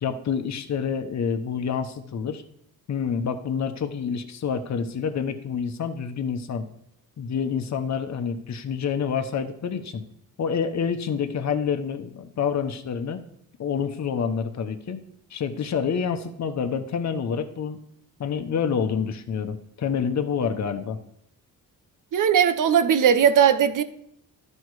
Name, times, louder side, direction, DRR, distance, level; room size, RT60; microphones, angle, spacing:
voice 1, 0.0-2.4 2.9-6.7 7.2-10.0 10.4-13.2 13.6-15.0 15.3-17.8 18.2-21.0, left 6 dB, 50° left, 1.0 m, -27 dB
voice 2, 22.1-23.8, right 8 dB, 60° right, 0.8 m, -18 dB
12.0 x 5.5 x 4.8 m
cardioid pair, 90°, 35 cm